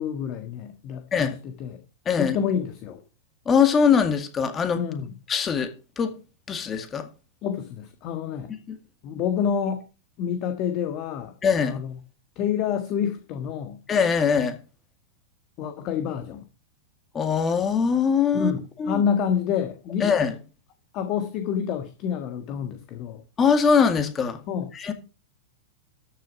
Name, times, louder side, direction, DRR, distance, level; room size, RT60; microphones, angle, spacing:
voice 1, 0.0-1.8 2.1-3.0 4.7-5.1 7.4-8.5 9.0-9.8 10.2-11.3 11.6-12.0 12.3-13.8 15.6-16.4 18.3-20.1 20.9-23.2 24.5-24.9, left 8 dB, 45° left, 1.6 m, -28 dB
voice 2, 2.1-2.4 3.5-4.8 5.3-5.7 6.0-6.1 6.5-7.1 8.7-8.8 11.4-11.8 13.9-14.6 17.1-18.5 18.8-19.0 20.0-20.4 23.4-24.4 24.7-24.9, left 6 dB, 25° left, 2.1 m, -22 dB
13.0 x 6.9 x 5.2 m
hypercardioid pair, 105°, 0 cm